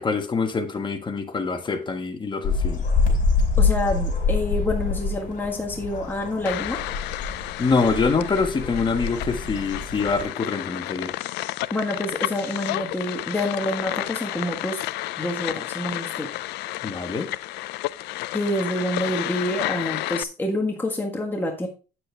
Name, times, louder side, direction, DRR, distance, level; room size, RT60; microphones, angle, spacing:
voice 1, 0.0-2.8 7.6-11.1 16.8-17.3, left 4 dB, 30° left, 6 dB, 1.4 m, -25 dB
sound 1, 2.4-10.2, left 4 dB, 50° left, 4.8 m, -26 dB
voice 2, 3.6-6.8 11.7-14.8 15.2-16.3 18.3-21.7, left 1 dB, 10° left, 1 dB, 1.5 m, -27 dB
sound 2, 6.5-20.2, left 17 dB, 85° left, 0.4 m, -31 dB
8.7 x 7.7 x 3.4 m, 0.34 s
cardioid pair, 110°, 17 cm